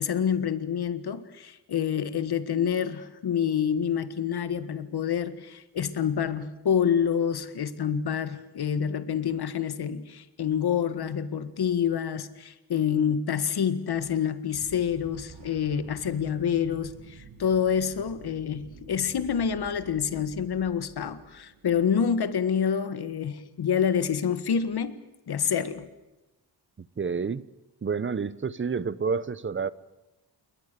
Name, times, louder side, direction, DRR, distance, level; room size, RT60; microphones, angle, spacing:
voice 1, 0.0-25.0 25.3-25.9, left 8 dB, 65° left, 1.7 m, -27 dB
sound 1, 14.5-22.2, right 5 dB, 85° right, 5.7 m, -49 dB
voice 2, 27.0-27.4 27.8-29.7, right 5 dB, 30° right, 0.9 m, -29 dB
28.5 x 22.0 x 6.9 m
wide cardioid pair, 130°, 42 cm